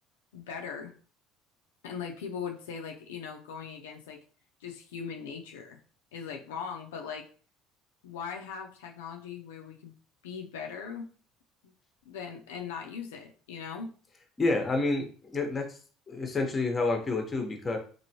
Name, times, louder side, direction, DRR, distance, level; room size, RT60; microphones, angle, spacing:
voice 1, 0.3-0.9 1.8-4.2 4.6-5.8 6.1-7.3 8.0-9.9 10.2-11.1 11.6-11.7 12.1-13.9, left 6 dB, 90° left, 2 dB, 0.4 m, -39 dB
voice 2, 14.4-15.8 16.1-17.8, left 3 dB, 30° left, 4 dB, 0.8 m, -29 dB
3.0 x 2.5 x 2.8 m, 0.41 s
supercardioid pair, 80°, 0 cm